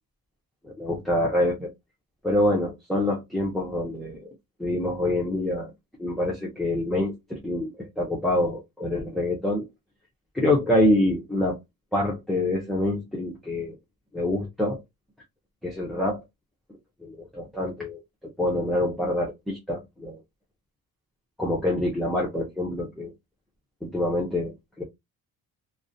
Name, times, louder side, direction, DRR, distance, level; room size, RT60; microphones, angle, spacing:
voice 1, 0.6-1.7 2.2-4.3 4.6-5.7 6.0-9.6 10.3-11.6 11.9-13.7 14.1-14.8 15.6-16.2 17.0-18.0 18.4-20.2 21.4-23.1 23.8-24.8, left 1 dB, ahead, 0.5 m, -26 dB
2.4 x 2.0 x 2.5 m
cardioid pair, 115°, 38 cm